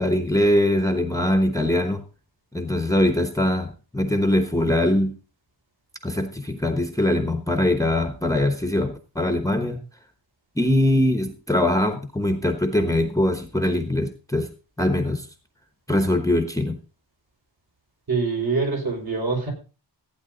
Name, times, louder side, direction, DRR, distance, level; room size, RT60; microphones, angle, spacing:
voice 1, 0.0-2.0 2.5-5.2 6.0-9.8 10.6-14.5 14.8-15.3 15.9-16.8, left 1 dB, 10° left, 6 dB, 1.0 m, -22 dB
voice 2, 18.1-19.5, right 4 dB, 55° right, 0 dB, 5.5 m, -24 dB
15.0 x 9.5 x 3.9 m, 0.34 s
wide cardioid pair, 175°, 43 cm